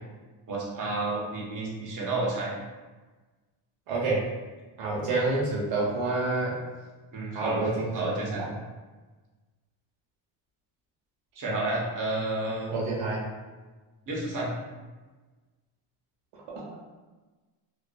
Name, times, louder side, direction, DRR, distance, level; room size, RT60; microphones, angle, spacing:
voice 1, 0.5-2.5 7.1-7.7 7.9-8.4 11.4-12.7 14.1-14.5, right 2 dB, 40° right, -4 dB, 0.8 m, -30 dB
voice 2, 3.9-4.3 4.8-6.5 7.3-8.5 12.7-13.2, right 3 dB, 90° right, -4 dB, 0.8 m, -28 dB
2.5 x 2.4 x 2.2 m, 1.3 s
cardioid pair, 80°, 50 cm